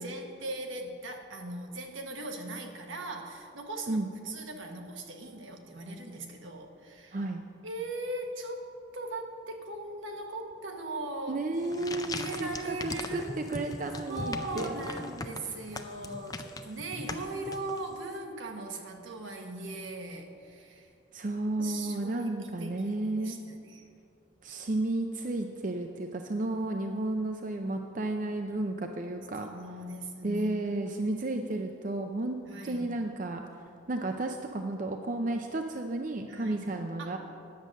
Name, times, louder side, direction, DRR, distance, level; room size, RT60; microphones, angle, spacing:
voice 1, 0.0-7.2 7.6-11.4 12.1-13.4 14.1-20.9 21.6-23.8 29.4-30.5 31.0-31.1 32.5-32.9 36.3-37.2, right 2 dB, 75° right, 3 dB, 1.2 m, -39 dB
voice 2, 7.1-7.4 11.3-14.7 21.1-23.4 24.4-29.5 30.2-32.4 32.6-33.4 33.9-37.2, right 2 dB, 40° right, 5 dB, 0.5 m, -32 dB
sound 1, 11.5-18.1, left 3 dB, 20° left, 0.4 m, -40 dB
10.5 x 7.7 x 6.4 m, 2.4 s
head